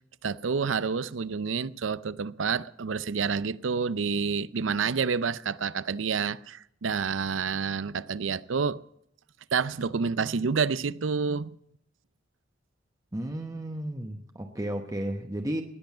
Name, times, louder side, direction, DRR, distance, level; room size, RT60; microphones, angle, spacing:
voice 1, 0.2-8.8 9.5-11.6, right 5 dB, 90° right, 0.6 m, -28 dB
voice 2, 13.1-15.6, right 1 dB, 20° right, 1.0 m, -33 dB
19.5 x 7.8 x 8.4 m
head